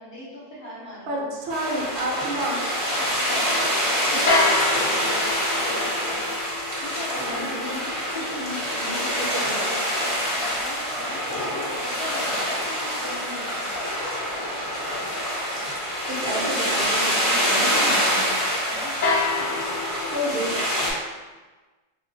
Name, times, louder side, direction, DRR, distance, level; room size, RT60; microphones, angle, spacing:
voice 1, 0.0-1.3 3.0-6.3 6.8-8.6 10.3-13.7 14.3-14.6 18.6-19.0, left 1 dB, 45° left, -9 dB, 1.0 m, -39 dB
voice 2, 1.1-2.6 7.2-8.0 8.4-9.8 10.0-10.1 16.1-18.3 20.1-20.9, right 1 dB, 60° right, -3 dB, 0.8 m, -31 dB
sound 1, 1.5-20.9, equal, 20° left, 0.6 m, -26 dB
sound 2, 4.3-10.4 19.0-21.0, left 3 dB, 65° left, 0.5 m, -29 dB
3.6 x 2.4 x 2.6 m, 1.3 s
omnidirectional pair, 1.3 m